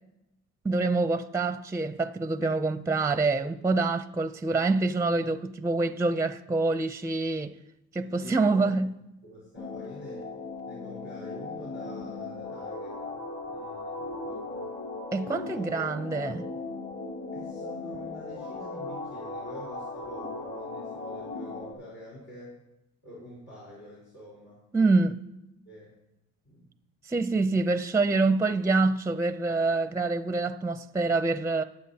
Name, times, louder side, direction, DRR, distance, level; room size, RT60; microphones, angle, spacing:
voice 1, 0.6-7.5 7.9-8.9 15.1-16.5 24.7-25.2 27.1-31.6, right 3 dB, 10° right, 0.5 m, -26 dB
voice 2, 7.9-8.8 9.2-10.3 10.7-14.7 15.2-15.6 17.3-22.6 23.0-24.6 25.6-25.9 26.4-26.7, equal, 85° left, 4.4 m, -47 dB
sound 1, 9.5-21.7, left 3 dB, 55° left, 2.8 m, -37 dB
19.0 x 8.0 x 2.9 m
cardioid pair, 90°, 30 cm